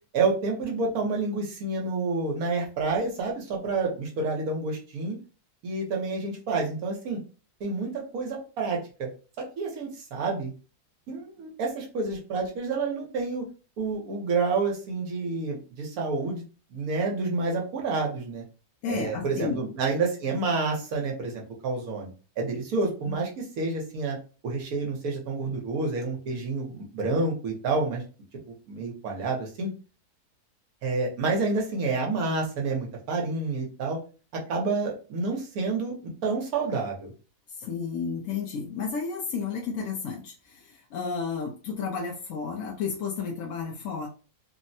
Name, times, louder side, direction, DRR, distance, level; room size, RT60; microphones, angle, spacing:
voice 1, 0.1-5.2 5.6-7.2 7.6-9.1 9.4-10.5 11.1-13.4 13.8-16.4 16.7-18.4 18.9-22.1 22.4-24.2 24.4-28.0 28.7-29.7 30.8-34.0 34.5-35.9 36.2-37.1, right 3 dB, 70° right, 0 dB, 1.3 m, -29 dB
voice 2, 18.8-19.6 23.1-23.2 37.5-44.1, left 5 dB, 70° left, -1 dB, 0.8 m, -32 dB
3.3 x 2.1 x 2.6 m, 0.35 s
omnidirectional pair, 1.6 m